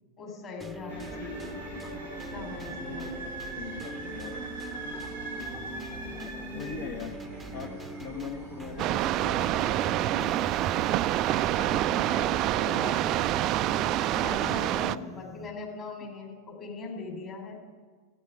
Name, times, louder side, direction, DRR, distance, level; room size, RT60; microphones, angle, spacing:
voice 1, 0.2-1.5 2.3-3.2 11.5-13.2 14.2-17.6, left 4 dB, 30° left, 1 dB, 3.9 m, -41 dB
sound 1, 0.6-15.7, right 2 dB, 5° right, 0.8 m, -44 dB
sound 2, 0.9-11.9, right 1 dB, 90° left, 5.0 m, -41 dB
voice 2, 2.7-4.4 6.5-7.2 7.5-10.7 14.4-15.2, left 6 dB, 50° left, 4 dB, 1.1 m, -41 dB
sound 3, 8.8-15.0, right 14 dB, 35° right, 0.3 m, -27 dB
15.0 x 8.6 x 9.0 m, 1.5 s
figure-of-eight pair, 90°, 0 cm